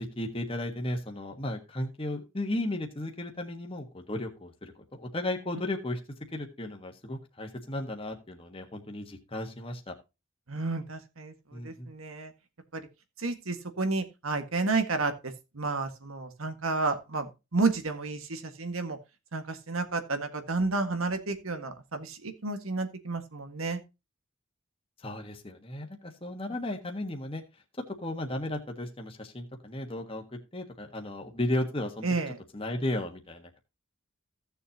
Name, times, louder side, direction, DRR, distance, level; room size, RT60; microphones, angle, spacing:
voice 1, 0.0-9.9 11.5-11.9 25.0-27.4 28.0-30.2 30.5-32.1 32.5-33.6, left 1 dB, 25° left, 3 dB, 1.4 m, -35 dB
voice 2, 10.5-11.3 11.6-12.3 12.7-12.8 13.2-19.0 19.3-23.8 32.0-32.3, right 3 dB, 85° right, 7 dB, 1.7 m, -31 dB
16.0 x 7.0 x 2.8 m, 0.26 s
head